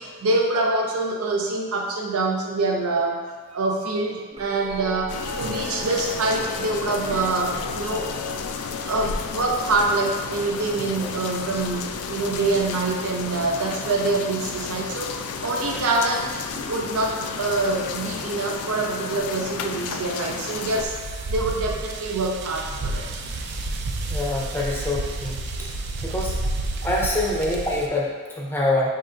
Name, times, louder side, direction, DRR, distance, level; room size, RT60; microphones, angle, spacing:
voice 1, 0.0-3.2 3.5-8.1 8.9-15.1 15.4-16.3 16.7-20.9 21.3-23.1, right 2 dB, 85° right, 1 dB, 0.6 m, -25 dB
sound 1, 4.3-14.4 15.4-15.8 16.5-17.5 19.3-19.4, left 2 dB, 25° right, 0.8 m, -38 dB
sound 2, 5.1-20.9, left 5 dB, 90° left, 0.4 m, -32 dB
sound 3, 20.7-27.9, right 2 dB, 50° right, 0.3 m, -30 dB
voice 2, 24.1-25.5 26.0-26.4 26.8-28.9, left 1 dB, 10° left, -3 dB, 0.5 m, -25 dB
5.4 x 3.6 x 2.5 m, 1.5 s
head